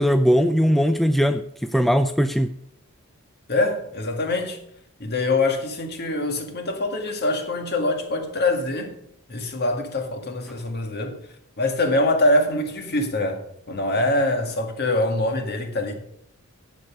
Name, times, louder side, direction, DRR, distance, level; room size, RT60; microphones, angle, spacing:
voice 1, 0.0-2.6, equal, ahead, 0.4 m, -20 dB
voice 2, 3.5-4.6 5.0-8.9 9.3-11.2 11.6-15.9, left 2 dB, 50° left, 1.9 m, -24 dB
11.0 x 8.1 x 6.1 m
head